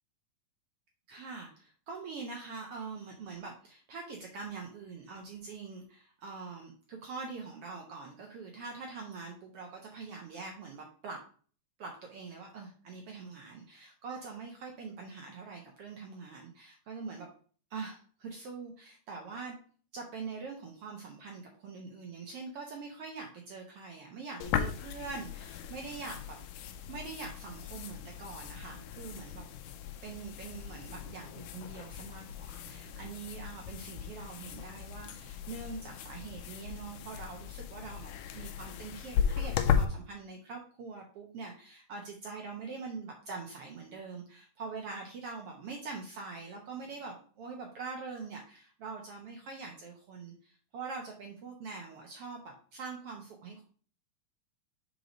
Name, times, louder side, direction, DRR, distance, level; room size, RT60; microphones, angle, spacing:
voice 1, 1.1-11.2 11.8-17.3 17.7-19.6 19.9-26.4 26.9-29.4 30.0-53.6, right 4 dB, 75° right, 1 dB, 1.3 m, -44 dB
sound 1, 24.4-39.9, left 8 dB, 80° left, 2.0 m, -36 dB
5.2 x 4.7 x 5.0 m, 0.43 s
omnidirectional pair, 3.9 m